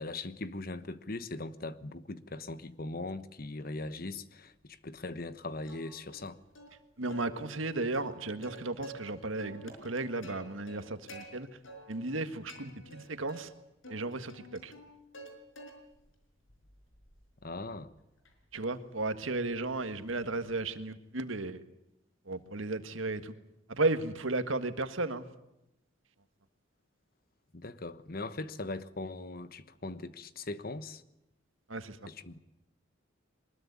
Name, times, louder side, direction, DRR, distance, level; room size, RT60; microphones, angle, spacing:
voice 1, 0.0-6.4 17.4-17.9 27.5-31.0 32.1-32.4, left 2 dB, 45° left, 1.1 m, -40 dB
Plucked string instrument, 5.6-6.3 6.6-6.7 7.1-9.1 9.4-11.2 11.6-12.2 12.5-13.5 13.8-15.3 15.6-16.1 16.5-20.7, equal, 80° left, 5.1 m, -50 dB
voice 2, 7.0-11.6 11.9-13.5 13.9-14.7 18.5-21.6 22.3-23.3 23.7-25.3 31.7-32.1, right 2 dB, 80° right, 1.7 m, -34 dB
23.5 x 20.5 x 9.6 m
head